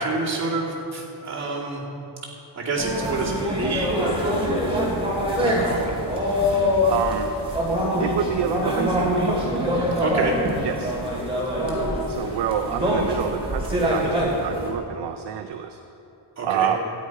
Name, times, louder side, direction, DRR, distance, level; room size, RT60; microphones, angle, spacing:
voice 1, 0.0-1.8 2.5-4.3 4.6-5.9 10.0-10.3 16.4-16.7, right 3 dB, 35° right, -5 dB, 2.5 m, -28 dB
sound 1, 2.8-14.7, equal, 10° right, 2.3 m, -24 dB
voice 2, 6.8-7.3 8.0-9.3 10.6-11.0 12.1-15.8 16.4-16.8, right 9 dB, 60° right, 6 dB, 0.6 m, -28 dB
13.5 x 9.9 x 4.8 m, 2.8 s
wide cardioid pair, 160°, 46 cm